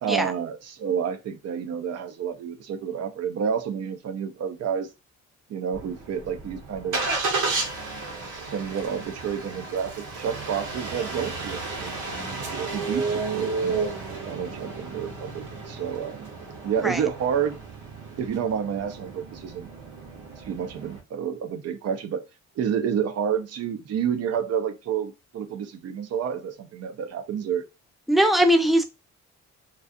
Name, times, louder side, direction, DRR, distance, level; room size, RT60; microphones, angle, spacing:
voice 1, 0.0-4.9 5.5-7.0 8.2-13.9 14.3-16.3 16.6-17.6 18.2-19.7 20.4-22.2 22.6-27.6, right 8 dB, 55° right, 0.5 m, -29 dB
Engine starting, 5.7-21.0, right 3 dB, 80° right, 0.9 m, -33 dB
voice 2, 28.1-28.8, equal, ahead, 0.4 m, -20 dB
2.5 x 2.4 x 2.4 m
cardioid pair, 90°, 30 cm